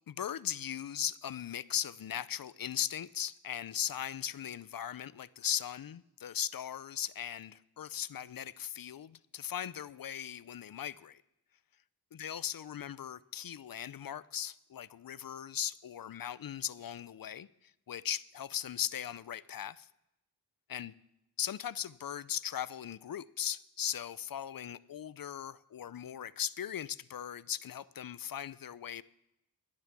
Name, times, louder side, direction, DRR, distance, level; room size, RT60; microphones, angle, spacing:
voice 1, 0.1-11.2 12.1-19.9 20.7-20.9 21.4-29.0, left 9 dB, 60° left, 0.5 m, -38 dB
12.0 x 10.5 x 6.0 m
wide cardioid pair, 60°, 39 cm